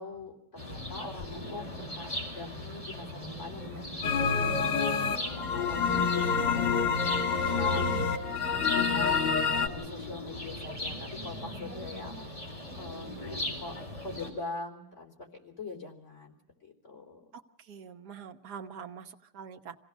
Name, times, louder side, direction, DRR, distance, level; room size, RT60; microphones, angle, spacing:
voice 1, 0.0-1.7 2.0-7.9 8.3-9.1 9.5-12.5 12.7-16.3 16.6-17.3, left 3 dB, 45° left, 1 dB, 4.4 m, -44 dB
sound 1, 0.6-14.3, left 1 dB, 20° left, 4.6 m, -39 dB
sound 2, 4.0-9.7, left 5 dB, 90° left, 2.2 m, -27 dB
voice 2, 7.7-8.1 17.3-17.4 17.7-19.8, right 6 dB, 80° right, 5 dB, 1.8 m, -43 dB
26.0 x 17.0 x 6.4 m, 0.88 s
omnidirectional pair, 1.8 m